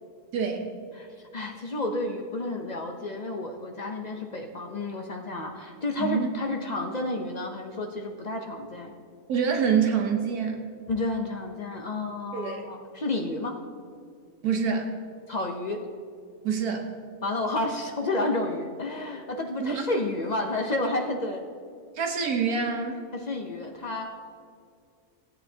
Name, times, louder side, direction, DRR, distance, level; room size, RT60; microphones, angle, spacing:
voice 1, 0.3-0.7 6.0-6.3 9.3-10.7 12.3-12.6 14.4-15.0 16.4-16.9 19.6-19.8 21.9-23.0, right 6 dB, 75° right, 3 dB, 1.4 m, -26 dB
voice 2, 1.0-9.0 10.9-13.6 15.3-15.9 17.2-21.5 23.1-24.2, left 2 dB, 50° left, 3 dB, 0.5 m, -31 dB
16.5 x 9.0 x 2.8 m, 2.3 s
omnidirectional pair, 1.6 m